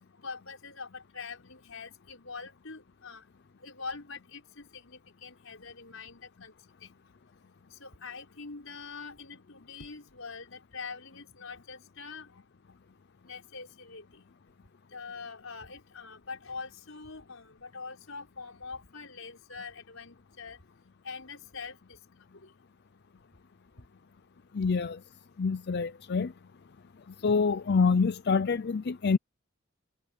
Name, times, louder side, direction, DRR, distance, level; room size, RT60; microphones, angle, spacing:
voice 1, 0.2-3.2 3.6-6.5 6.8-6.9 7.8-12.3 13.2-14.0 14.9-20.6 21.0-22.0 27.3-27.4, left 4 dB, 85° left, 4.8 m, -44 dB
voice 2, 24.5-25.0 25.4-26.3 27.2-29.2, left 5 dB, 55° left, 0.5 m, -26 dB
head